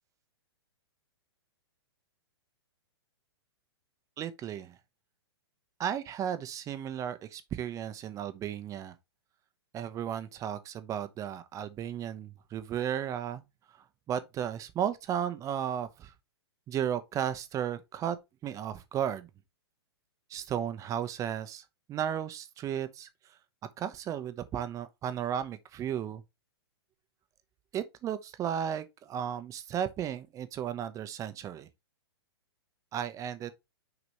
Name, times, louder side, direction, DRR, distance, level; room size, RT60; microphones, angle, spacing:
voice 1, 4.2-4.8 5.8-8.9 9.7-13.4 13.7-16.1 16.7-18.2 18.4-19.3 20.3-23.1 23.8-26.2 27.7-31.7 32.9-33.5, right 9 dB, 25° right, 0.8 m, -34 dB
6.4 x 5.0 x 2.9 m
hypercardioid pair, 115°, 14 cm